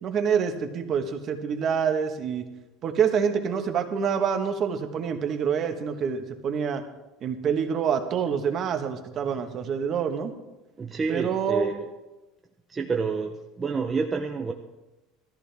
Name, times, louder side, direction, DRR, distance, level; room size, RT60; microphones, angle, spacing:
voice 1, 0.0-2.4 2.8-6.8 7.2-10.3 11.1-11.7, right 7 dB, 30° right, 6 dB, 1.2 m, -26 dB
voice 2, 10.8-11.9 12.7-14.5, right 5 dB, 15° right, 1 dB, 0.6 m, -29 dB
18.0 x 14.0 x 3.5 m, 1.1 s
cardioid pair, 175°, 0 cm